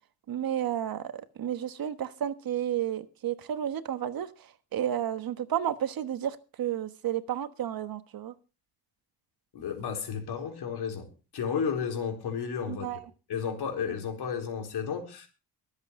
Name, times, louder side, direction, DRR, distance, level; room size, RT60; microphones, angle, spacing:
voice 1, 0.3-4.3 4.7-8.3 12.7-13.0, right 10 dB, 65° right, 1.3 m, -32 dB
voice 2, 9.5-11.1 11.3-13.0 13.3-15.3, left 6 dB, 85° left, 4.0 m, -32 dB
24.0 x 8.1 x 3.7 m
wide cardioid pair, 140°, 38 cm